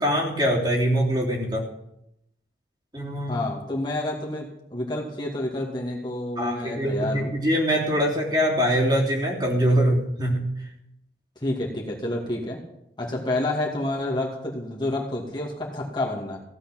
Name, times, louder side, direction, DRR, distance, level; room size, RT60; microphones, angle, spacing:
voice 1, 0.0-1.6 2.9-3.4 6.4-10.4, equal, 25° right, -3 dB, 3.4 m, -23 dB
voice 2, 3.3-7.4 11.4-12.6 13.0-16.4, left 1 dB, 25° left, -2 dB, 2.5 m, -29 dB
16.0 x 7.6 x 9.2 m, 0.80 s
head